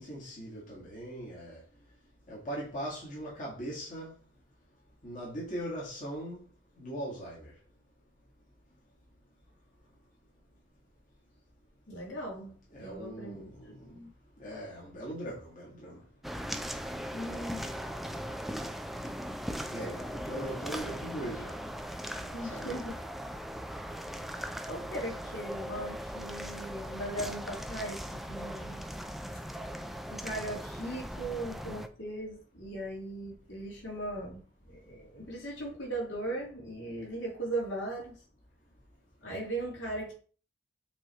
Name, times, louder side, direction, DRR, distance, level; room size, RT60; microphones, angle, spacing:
voice 1, 0.0-1.6 2.3-4.1 5.0-6.4 6.8-7.5 12.7-13.8 14.4-16.0 19.7-21.6 22.2-23.1, right 1 dB, 40° left, 2.0 m, -40 dB
voice 2, 11.9-12.5 12.8-14.1 17.1-17.7 22.3-22.9 24.7-28.0 28.3-28.9 30.1-34.4 34.6-38.1 39.2-40.1, right 1 dB, 70° left, 2.8 m, -38 dB
sound 1, 16.2-31.9, equal, ahead, 0.4 m, -39 dB
7.1 x 3.3 x 4.3 m
head